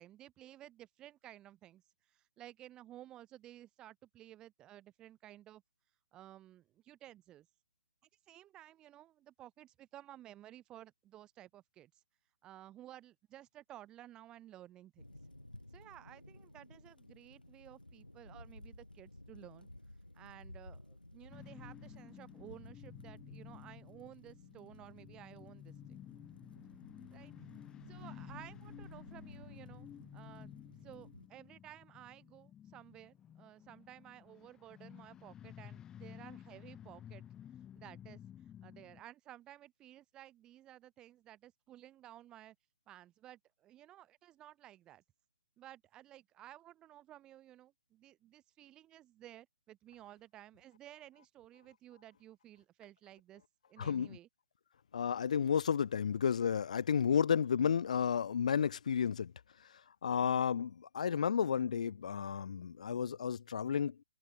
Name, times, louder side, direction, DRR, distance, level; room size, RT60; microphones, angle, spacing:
voice 1, 0.0-5.6 6.1-7.5 8.3-12.0 12.4-15.0 15.7-19.7 20.1-25.7 27.1-27.3 27.9-30.5 30.8-37.2 37.7-42.6 42.9-45.0 45.6-53.4 53.7-54.3, right 13 dB, 15° right, 7.3 m, -55 dB
sound 1, 15.0-31.3, left 1 dB, 90° left, 2.2 m, -55 dB
sound 2, 21.3-39.0, left 10 dB, 15° left, 3.2 m, -53 dB
voice 2, 54.9-59.3 60.0-63.9, left 7 dB, 50° left, 0.5 m, -32 dB
open air
figure-of-eight pair, 135°, 5 cm